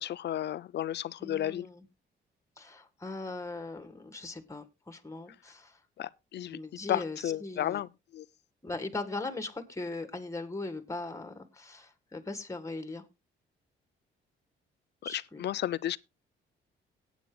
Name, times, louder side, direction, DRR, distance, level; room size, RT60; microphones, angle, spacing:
voice 1, 0.0-1.7 6.0-6.6 6.9-8.3 15.0-16.0, left 12 dB, 60° left, 0.6 m, -33 dB
voice 2, 1.2-1.9 2.6-5.8 6.5-7.8 8.6-13.0 15.0-15.4, left 2 dB, 15° left, 1.9 m, -39 dB
18.5 x 9.0 x 2.3 m
cardioid pair, 90°, 20 cm